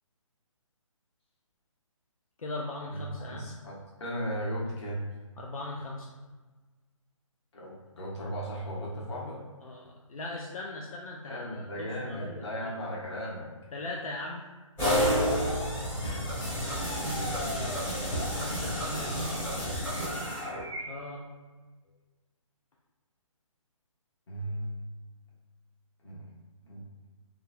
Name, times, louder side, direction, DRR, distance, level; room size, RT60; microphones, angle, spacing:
voice 1, 2.4-3.5 5.4-6.1 9.6-12.7 13.7-14.5 16.0-16.3 18.3-19.2 20.9-21.2, left 2 dB, 90° left, -1 dB, 0.4 m, -39 dB
voice 2, 2.9-5.0 7.5-9.4 11.2-13.5 15.7-15.8 16.9-17.6 19.0-19.7 24.3-24.7 26.0-26.3 26.6-26.8, equal, 55° left, -5 dB, 1.0 m, -37 dB
sound 1, 14.8-20.8, equal, 10° left, 0.7 m, -30 dB
3.1 x 2.2 x 2.4 m, 1.3 s
hypercardioid pair, 150°, 17 cm